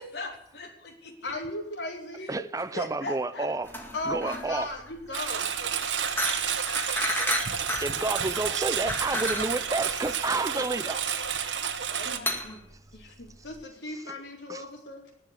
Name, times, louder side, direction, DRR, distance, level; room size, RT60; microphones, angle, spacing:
voice 1, 0.0-1.1 2.2-2.4 2.7-3.5 12.0-12.6 12.9-13.3, left 1 dB, 65° left, 3.5 m, -40 dB
voice 2, 1.2-2.3 3.9-5.5 11.9-12.4 13.4-15.1, left 2 dB, 80° left, 3.9 m, -36 dB
voice 3, 2.3-3.7 4.0-4.7 7.3-11.0 13.9-14.0 14.5-14.6, right 2 dB, 20° right, 0.5 m, -30 dB
sound 1, 3.6-13.6, left 1 dB, 10° left, 2.0 m, -34 dB
Engine, 5.1-12.2, right 7 dB, 80° right, 1.2 m, -30 dB
19.5 x 6.9 x 9.6 m
head